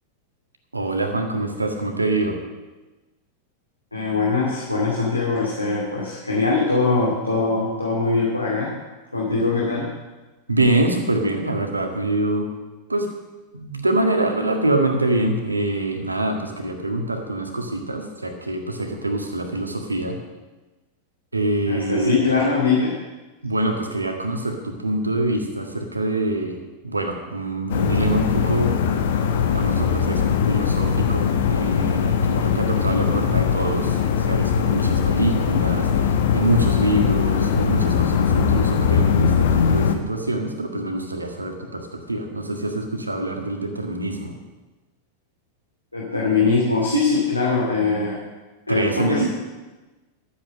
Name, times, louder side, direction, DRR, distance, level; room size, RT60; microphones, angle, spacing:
voice 1, 0.7-2.4 10.5-12.5 12.9-13.1 13.5-20.2 21.3-22.1 23.4-26.6 26.8-28.7 29.5-44.3 48.7-49.3, right 2 dB, 80° right, 4 dB, 1.8 m, -25 dB
voice 2, 3.9-8.7 9.1-9.8 21.7-22.9 45.9-48.2 48.7-49.3, left 3 dB, 85° left, -4 dB, 2.6 m, -22 dB
sound 1, 27.7-39.9, left 7 dB, 55° left, 1.1 m, -20 dB
12.5 x 8.8 x 6.5 m, 1.2 s
figure-of-eight pair, 90°, 0 cm